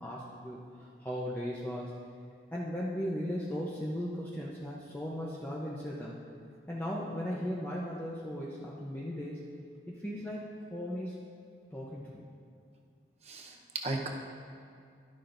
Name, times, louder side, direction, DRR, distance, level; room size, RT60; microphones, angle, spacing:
voice 1, 0.0-2.0 2.5-6.2 6.7-9.5 9.9-11.2 11.7-12.2, equal, 10° left, -6 dB, 0.7 m, -37 dB
voice 2, 13.2-14.1, right 2 dB, 35° right, 1 dB, 0.9 m, -36 dB
11.5 x 11.5 x 2.6 m, 2.4 s
head